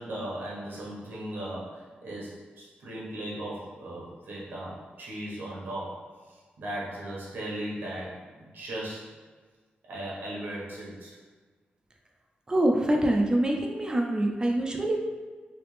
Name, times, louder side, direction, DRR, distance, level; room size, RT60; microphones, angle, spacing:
voice 1, 0.0-9.1 9.9-11.2, right 1 dB, 75° right, -5 dB, 1.1 m, -37 dB
voice 2, 12.5-15.0, right 1 dB, 25° right, 1 dB, 0.4 m, -25 dB
3.3 x 2.8 x 3.2 m, 1.4 s
wide cardioid pair, 120°, 3 cm